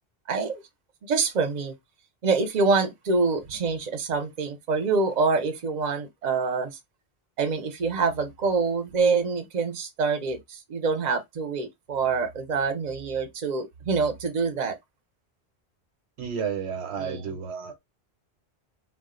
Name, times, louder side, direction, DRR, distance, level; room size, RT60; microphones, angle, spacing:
voice 1, 0.3-0.6 1.1-1.7 2.2-6.8 7.4-14.8 17.0-17.3, right 4 dB, 45° right, 0.7 m, -26 dB
voice 2, 16.2-17.8, right 6 dB, 80° right, 1.0 m, -32 dB
2.4 x 2.1 x 3.6 m
omnidirectional pair, 1.1 m